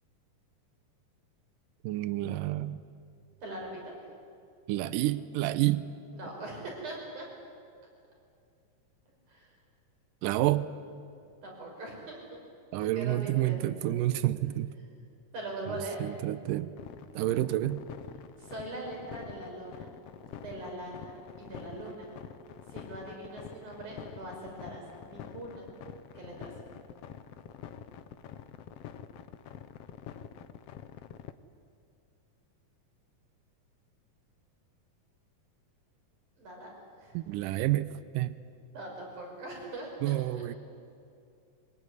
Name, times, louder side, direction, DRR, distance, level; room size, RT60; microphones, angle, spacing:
voice 1, 1.8-2.8 4.7-5.9 10.2-10.7 12.7-14.7 15.7-16.7 17.2-17.9 37.1-38.4 40.0-40.6, right 15 dB, 85° right, 14 dB, 2.4 m, -29 dB
voice 2, 3.4-4.0 6.1-7.3 9.3-9.5 11.4-12.4 12.8-14.0 15.3-16.0 18.4-19.9 20.4-22.1 22.7-25.7 26.2-26.7 36.4-36.7 37.0-37.1 38.7-40.4, right 2 dB, 65° right, -1 dB, 7.1 m, -41 dB
sound 1, 16.8-31.3, left 10 dB, 70° left, 1.5 m, -46 dB
23.5 x 21.0 x 9.8 m, 2.4 s
omnidirectional pair, 3.8 m